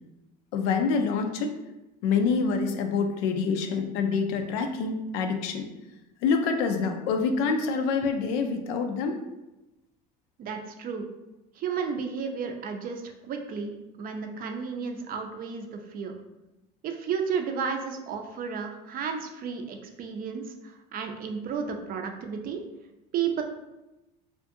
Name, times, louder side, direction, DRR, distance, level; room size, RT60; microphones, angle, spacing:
voice 1, 0.5-1.6 2.0-5.7 6.2-9.2, left 5 dB, 80° left, 5 dB, 0.4 m, -26 dB
voice 2, 10.4-11.1 11.6-16.1 16.8-22.6 23.1-23.4, right 6 dB, 45° right, 4 dB, 0.5 m, -33 dB
2.6 x 2.5 x 2.5 m, 0.99 s
supercardioid pair, 90°, 20 cm